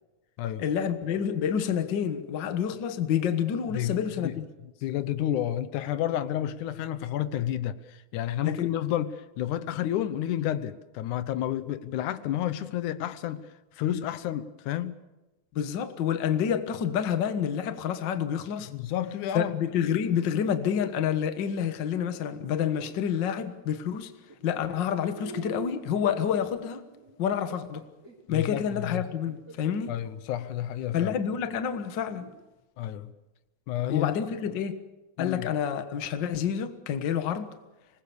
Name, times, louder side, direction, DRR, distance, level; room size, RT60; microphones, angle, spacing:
voice 1, 0.6-4.5 8.4-8.7 15.5-18.7 19.3-24.1 24.4-26.8 27.2-27.9 28.3-30.0 30.9-32.3 33.9-34.8 35.2-37.5, left 8 dB, 45° left, 1.7 m, -28 dB
voice 2, 3.7-4.4 4.8-13.5 13.8-15.0 18.7-19.9 28.3-29.1 29.9-31.1 32.8-33.1 33.7-34.1 35.2-35.5, left 11 dB, 85° left, 2.4 m, -30 dB
sound 1, 21.6-23.5 24.3-24.6 25.2-29.8 30.5-30.6 32.2-32.4, right 2 dB, 30° right, 4.4 m, -46 dB
26.5 x 20.0 x 7.1 m
omnidirectional pair, 3.4 m